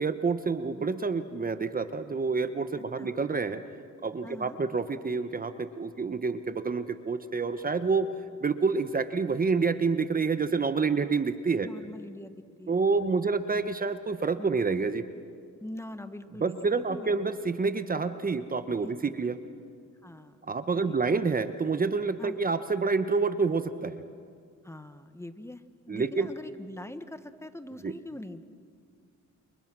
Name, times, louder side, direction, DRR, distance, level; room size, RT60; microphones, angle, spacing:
voice 1, 0.0-3.6 4.0-8.1 8.4-11.7 12.7-15.0 16.4-19.4 20.5-24.0 25.9-26.3 27.8-27.9, right 4 dB, 30° right, 10 dB, 1.1 m, -28 dB
voice 2, 4.2-4.6 11.6-12.3 12.6-12.9 13.1-13.5 14.4-14.5 15.6-17.2 18.8-19.1 20.0-20.5 20.7-21.0 22.2-22.4 24.6-28.5, left 1 dB, 10° left, 10 dB, 1.3 m, -43 dB
29.5 x 28.5 x 6.2 m, 2.2 s
cardioid pair, 90°, 30 cm